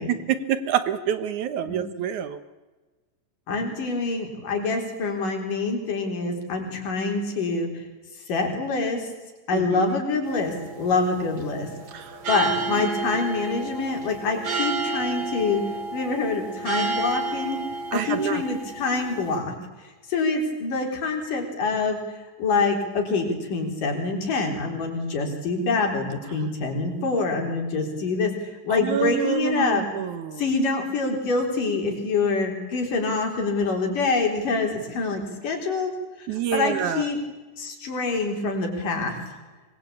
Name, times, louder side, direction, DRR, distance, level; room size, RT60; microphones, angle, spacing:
voice 1, 0.1-2.4 9.5-9.8 11.9-12.2 12.8-12.9 17.9-18.4 28.7-30.4 36.3-37.1, right 9 dB, 65° right, 12 dB, 2.4 m, -27 dB
voice 2, 3.5-7.7 8.3-9.1 9.5-11.7 12.3-15.6 15.9-17.6 17.9-19.5 20.1-22.0 22.4-29.9 30.4-35.9 36.2-37.2 37.6-39.2, left 3 dB, 70° left, 3 dB, 5.7 m, -26 dB
sound 1, 10.3-19.4, right 3 dB, 45° right, 3.8 m, -31 dB
25.0 x 21.0 x 8.7 m, 1.2 s
omnidirectional pair, 3.9 m